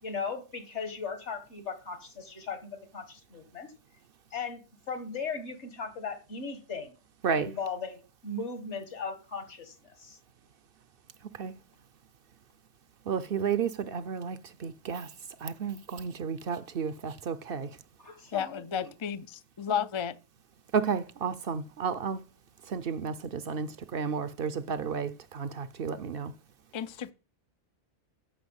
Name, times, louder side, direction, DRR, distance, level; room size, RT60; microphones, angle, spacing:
voice 1, 0.0-3.7 4.3-4.6 4.9-6.9 7.4-10.2 18.0-18.9, left 4 dB, 75° left, 2.1 m, -37 dB
voice 2, 13.1-15.1 15.4-17.7 20.7-22.2 22.7-26.3, right 6 dB, 60° right, 0.8 m, -32 dB
voice 3, 18.3-20.2 26.7-27.1, left 8 dB, 50° left, 0.3 m, -33 dB
11.0 x 4.5 x 8.0 m
omnidirectional pair, 1.2 m